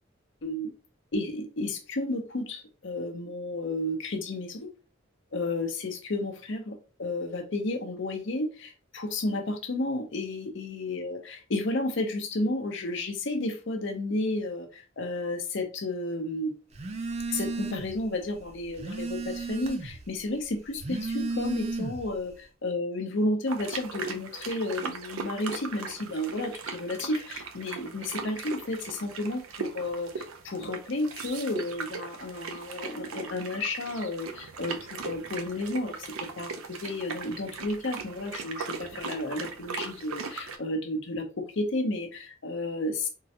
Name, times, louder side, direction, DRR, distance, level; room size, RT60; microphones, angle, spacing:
voice 1, 0.4-0.7 1.1-4.7 5.3-16.5 17.3-43.1, left 2 dB, 60° left, 0.7 m, -32 dB
Telephone, 16.7-18.0 18.4-20.0 20.7-22.2, right 3 dB, 30° right, 0.4 m, -33 dB
sound 1, 23.5-40.6, right 5 dB, 90° right, 0.5 m, -39 dB
3.7 x 2.1 x 2.8 m
head